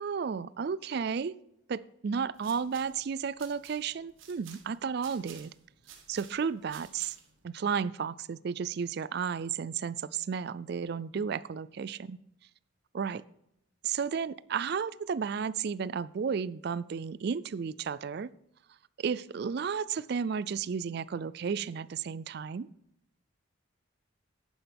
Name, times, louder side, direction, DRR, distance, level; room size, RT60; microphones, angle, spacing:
voice 1, 0.0-1.4 1.7-5.5 6.1-7.2 7.4-12.2 12.9-13.2 13.8-18.3 19.0-22.7, right 6 dB, 50° right, 19 dB, 0.3 m, -33 dB
sound 1, 2.2-7.4, right 8 dB, 75° right, 1.4 m, -54 dB
10.5 x 10.0 x 3.5 m, 0.77 s
head